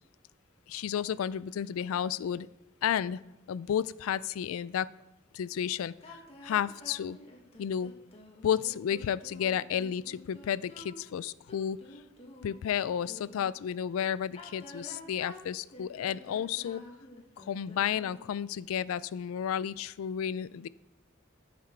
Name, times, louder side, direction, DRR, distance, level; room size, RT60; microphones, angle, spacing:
voice 1, 0.7-2.5 2.8-3.2 3.5-4.9 5.3-7.2 7.6-7.9 8.4-11.8 12.4-16.8 17.4-20.7, left 9 dB, 85° left, 19 dB, 0.3 m, -32 dB
sound 1, 6.0-13.5 14.2-18.2, left 1 dB, 30° left, 1.4 m, -50 dB
10.5 x 5.9 x 4.4 m, 0.99 s
head